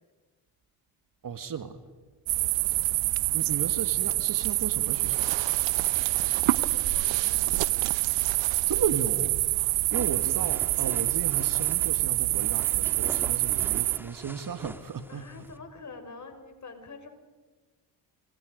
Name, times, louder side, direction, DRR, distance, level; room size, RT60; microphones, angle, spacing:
voice 1, 1.2-1.8 3.3-5.3 8.7-9.4 9.9-15.3, right 7 dB, 45° right, 10 dB, 1.9 m, -34 dB
voice 2, 2.3-2.8 6.4-7.6 15.1-17.1, left 4 dB, 40° left, 6 dB, 5.6 m, -46 dB
sound 1, 2.3-14.0, right 19 dB, 75° right, 0.9 m, -26 dB
sound 2, 9.7-15.6, right 1 dB, 5° right, 2.0 m, -44 dB
30.0 x 29.0 x 5.3 m, 1.3 s
supercardioid pair, 60°, 45 cm